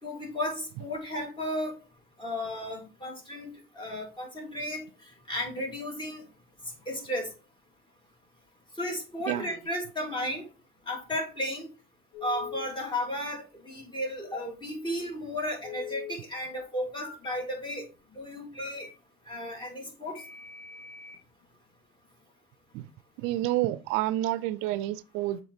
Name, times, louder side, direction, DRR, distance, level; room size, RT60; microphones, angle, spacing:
voice 1, 0.0-1.8 2.2-6.2 6.9-7.3 8.8-10.4 10.9-11.7 12.2-17.9 18.1-18.9 19.3-20.2, left 1 dB, 25° left, 2.8 m, -34 dB
Telephone, 12.1-12.6 15.6-16.1 17.0-17.3 18.6-18.9 20.2-21.2, left 10 dB, 80° left, 1.4 m, -42 dB
voice 2, 23.2-25.4, right 15 dB, 85° right, 0.4 m, -29 dB
7.1 x 4.1 x 3.4 m
supercardioid pair, 80°, 20 cm